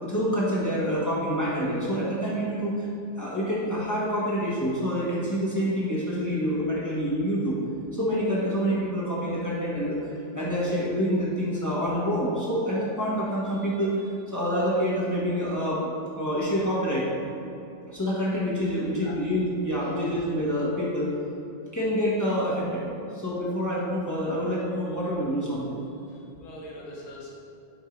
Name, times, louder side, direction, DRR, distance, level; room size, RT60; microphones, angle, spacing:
voice 1, 0.0-2.9 3.2-7.6 7.9-17.0 17.9-21.1 21.7-22.9 23.1-25.8, equal, 15° left, -8 dB, 0.8 m, -27 dB
voice 2, 26.0-27.3, left 1 dB, 90° left, -4 dB, 1.8 m, -43 dB
7.9 x 2.7 x 4.6 m, 2.8 s
omnidirectional pair, 2.2 m